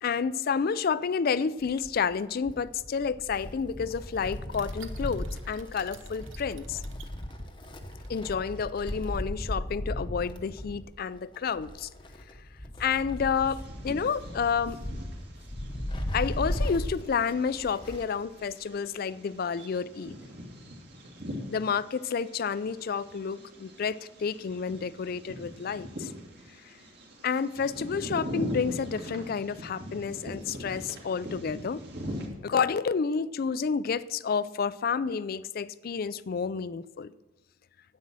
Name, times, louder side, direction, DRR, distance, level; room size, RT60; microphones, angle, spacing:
voice 1, 0.0-6.8 8.1-11.9 12.8-14.8 16.1-20.1 21.5-26.1 26.6-26.7 27.2-31.8 32.4-37.1, left 6 dB, 45° left, 17 dB, 0.4 m, -30 dB
Wind, 1.6-18.2 18.5-18.6 19.6-19.7, left 1 dB, 25° left, 0.8 m, -37 dB
sound 1, 4.5-9.8, right 5 dB, 70° right, 0.9 m, -53 dB
Bird vocalization bird call bird song, 13.4-32.3, left 1 dB, 55° right, 2.4 m, -42 dB
9.8 x 8.6 x 6.1 m, 1.1 s
head